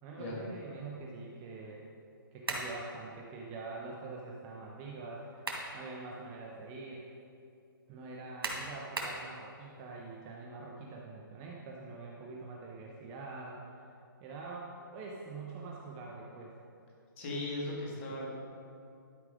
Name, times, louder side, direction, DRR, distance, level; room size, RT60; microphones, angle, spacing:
voice 1, 0.0-1.8 2.3-7.1 7.9-13.6 14.2-16.5, right 3 dB, 20° right, -2 dB, 0.6 m, -45 dB
sound 1, 2.4-2.8 5.1-5.7 6.2-6.3 8.4-9.2, right 2 dB, 90° right, 2.0 m, -36 dB
voice 2, 17.2-18.3, left 2 dB, 35° left, -3 dB, 2.1 m, -37 dB
12.0 x 4.8 x 5.0 m, 2.5 s
hypercardioid pair, 160°, 12 cm